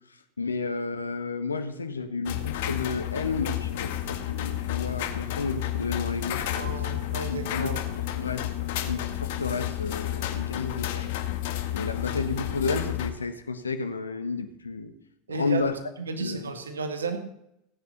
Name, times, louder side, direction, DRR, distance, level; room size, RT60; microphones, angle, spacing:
voice 1, 0.4-6.4 6.8-6.9 7.3-8.5 8.9-11.1 11.7-14.9 15.3-15.8 16.2-16.6, left 4 dB, 90° left, 8 dB, 1.5 m, -31 dB
sound 1, 2.3-13.1, left 13 dB, 65° left, 1.8 m, -31 dB
voice 2, 6.5-8.2 15.3-15.6 16.0-17.2, right 4 dB, 85° right, 7 dB, 2.0 m, -33 dB
17.0 x 9.5 x 6.8 m, 0.79 s
hypercardioid pair, 85°, 0 cm